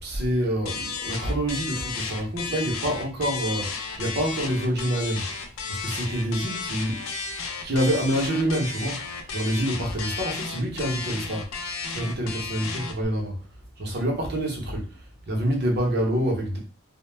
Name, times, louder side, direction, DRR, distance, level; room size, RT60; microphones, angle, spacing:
voice 1, 0.0-5.4 5.7-7.0 7.3-11.5 11.9-13.4 13.8-15.0 15.3-16.6, equal, 55° right, 0.7 m, -27 dB
sound 1, 0.7-13.1, left 4 dB, 80° left, 0.4 m, -33 dB
2.1 x 2.1 x 3.1 m
head